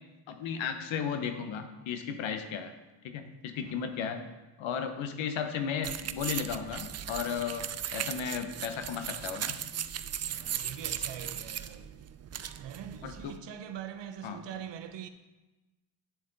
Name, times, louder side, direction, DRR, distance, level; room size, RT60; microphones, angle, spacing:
voice 1, 0.3-2.7 3.0-4.2 4.6-9.5 13.0-13.3 14.2-14.4, left 7 dB, 80° left, 1.0 m, -35 dB
sound 1, 5.8-13.4, right 9 dB, 35° right, 0.4 m, -37 dB
voice 2, 10.3-11.9 12.6-15.1, right 9 dB, 65° right, 0.9 m, -43 dB
8.5 x 7.2 x 4.0 m
supercardioid pair, 55°, 46 cm